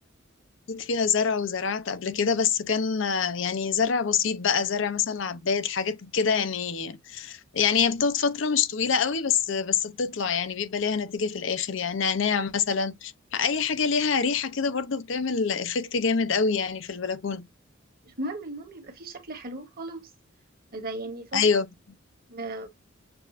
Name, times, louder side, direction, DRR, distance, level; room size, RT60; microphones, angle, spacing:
voice 1, 0.7-17.4 21.3-21.7, left 6 dB, 70° left, 0.6 m, -26 dB
voice 2, 18.0-20.1 20.7-21.6 22.3-22.7, right 1 dB, 50° right, 1.3 m, -36 dB
6.9 x 2.5 x 2.5 m
head